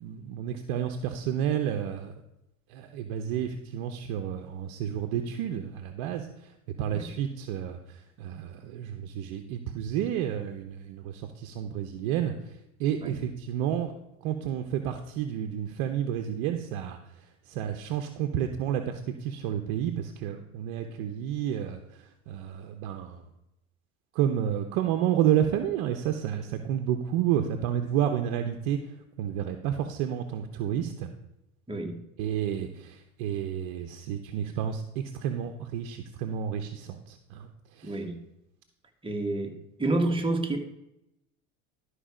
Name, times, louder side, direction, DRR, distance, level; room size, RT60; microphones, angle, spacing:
voice 1, 0.0-2.1 2.7-6.3 6.8-12.3 12.8-13.9 14.2-17.0 17.5-21.8 22.3-23.2 24.1-28.8 29.2-31.1 32.2-37.5 37.8-37.9, right 10 dB, 65° right, 5 dB, 0.9 m, -30 dB
voice 2, 31.7-32.0 37.8-38.2 39.0-39.5 39.8-40.6, right 2 dB, 10° right, 2 dB, 1.7 m, -29 dB
12.5 x 4.9 x 5.0 m, 0.87 s
hypercardioid pair, 80°, 41 cm